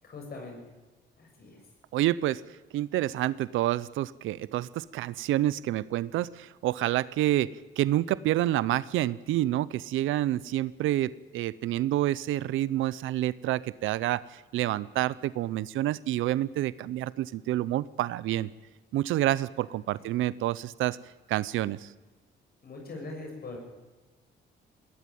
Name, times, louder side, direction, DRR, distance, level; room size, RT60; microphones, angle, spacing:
voice 1, 0.0-0.6 1.2-1.6 19.9-20.0 22.6-23.6, left 3 dB, 50° left, 2 dB, 6.8 m, -41 dB
voice 2, 1.9-2.4 2.7-18.5 18.9-21.0 21.3-21.9, right 14 dB, 85° right, 19 dB, 0.7 m, -28 dB
20.0 x 18.0 x 9.3 m, 1.2 s
cardioid pair, 90°, 20 cm